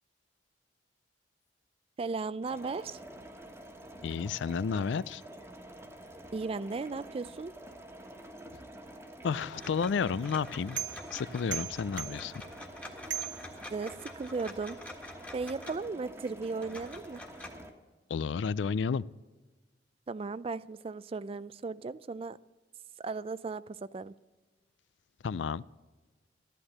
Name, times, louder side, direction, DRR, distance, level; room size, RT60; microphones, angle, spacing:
voice 1, 2.0-3.0 6.3-7.6 13.7-14.8 15.3-17.2 20.1-22.4 23.0-24.1, right 4 dB, 30° right, 0.3 m, -36 dB
sound 1, 2.4-17.7, right 1 dB, 15° right, 1.3 m, -48 dB
voice 2, 4.0-5.2 9.2-10.8 11.1-12.4 18.1-19.1 25.2-25.6, left 6 dB, 80° left, 0.4 m, -31 dB
sound 2, 9.3-16.0 16.6-17.5, left 1 dB, 10° left, 1.5 m, -48 dB
sound 3, 9.5-14.2, right 9 dB, 80° right, 0.9 m, -42 dB
13.0 x 11.5 x 6.6 m
head